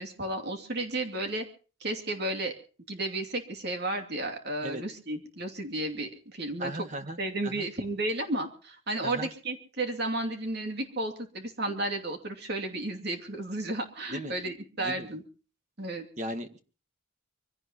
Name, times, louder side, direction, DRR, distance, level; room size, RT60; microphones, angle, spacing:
voice 1, 0.0-1.4 1.8-2.5 2.9-6.9 7.2-15.2 15.8-16.1, right 2 dB, 50° right, 4 dB, 2.7 m, -33 dB
voice 2, 6.6-7.2 7.4-7.7 9.0-9.3 14.1-14.3 14.8-15.1 16.2-16.6, right 1 dB, 35° right, 7 dB, 1.6 m, -36 dB
25.0 x 17.0 x 3.0 m, 0.38 s
head